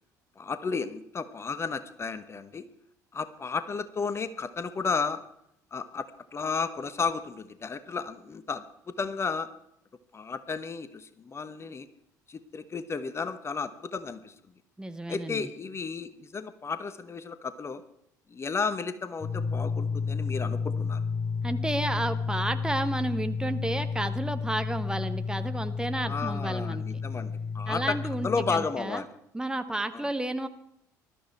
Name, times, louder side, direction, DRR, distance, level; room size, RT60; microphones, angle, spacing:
voice 1, 0.4-2.7 3.1-5.2 5.7-6.1 6.3-8.6 9.0-9.5 10.1-11.9 12.3-14.3 15.1-17.8 18.3-21.0 26.0-28.0 28.2-29.1 29.9-30.1, left 5 dB, 25° left, 13 dB, 1.0 m, -33 dB
voice 2, 14.8-15.5 21.4-27.0 27.7-29.0 29.3-30.5, right 1 dB, 10° right, 8 dB, 1.2 m, -32 dB
sound 1, 19.2-28.6, left 5 dB, 10° left, 3.3 m, -31 dB
20.0 x 13.0 x 4.6 m, 0.76 s
figure-of-eight pair, 55°, 10 cm